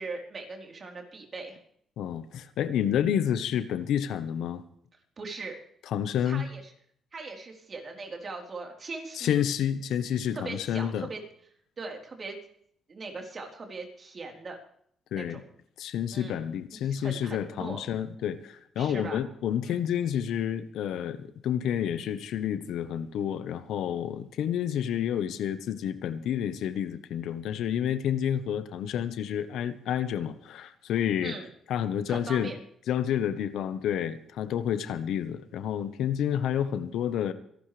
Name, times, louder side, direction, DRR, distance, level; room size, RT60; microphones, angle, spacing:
voice 1, 0.0-1.6 5.2-5.6 6.2-6.7 7.1-9.4 10.3-11.2 11.8-12.4 12.9-14.6 15.2-15.4 16.1-16.4 16.8-17.8 18.8-19.2 19.6-19.8 31.2-31.5 32.1-32.6, right 3 dB, 40° right, 2 dB, 4.0 m, -40 dB
voice 2, 2.0-4.6 5.9-6.5 9.2-11.1 15.1-15.4 15.8-31.3 31.7-32.5 32.9-37.3, left 9 dB, 80° left, 12 dB, 1.1 m, -29 dB
26.0 x 12.0 x 3.4 m, 0.67 s
cardioid pair, 90°, 0 cm